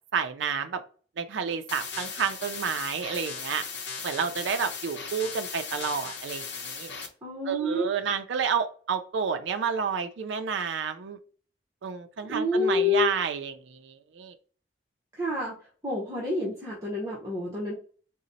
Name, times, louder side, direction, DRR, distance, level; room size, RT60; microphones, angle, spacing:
voice 1, 0.1-0.8 1.2-3.7 4.0-6.9 7.5-11.2 11.8-14.3, right 6 dB, 80° right, 7 dB, 0.4 m, -30 dB
sound 1, 1.7-7.1, left 5 dB, 70° left, 0.7 m, -37 dB
voice 2, 7.2-7.9 12.3-13.1 15.1-15.6 15.8-17.7, left 2 dB, 15° right, -5 dB, 0.8 m, -28 dB
4.0 x 2.0 x 3.9 m, 0.41 s
head